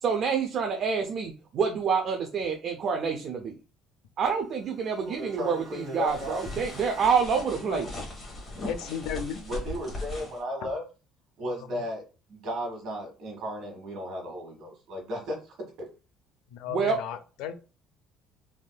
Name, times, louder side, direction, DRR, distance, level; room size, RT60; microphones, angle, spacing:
voice 1, 0.0-3.6 4.2-7.9 16.7-17.0, right 6 dB, 40° right, 0.4 m, -27 dB
sound 1, 4.3-9.3, equal, 5° left, 1.3 m, -52 dB
voice 2, 5.1-6.5 9.4-10.8 11.4-12.0 12.3-15.9, equal, 60° right, 1.4 m, -35 dB
sound 2, 6.1-10.4, left 1 dB, 25° left, 1.1 m, -39 dB
voice 3, 8.7-9.6 10.6-10.7 11.7-11.8 16.5-17.5, left 8 dB, 80° left, 0.4 m, -35 dB
3.4 x 2.6 x 2.2 m
cardioid pair, 160°, 0 cm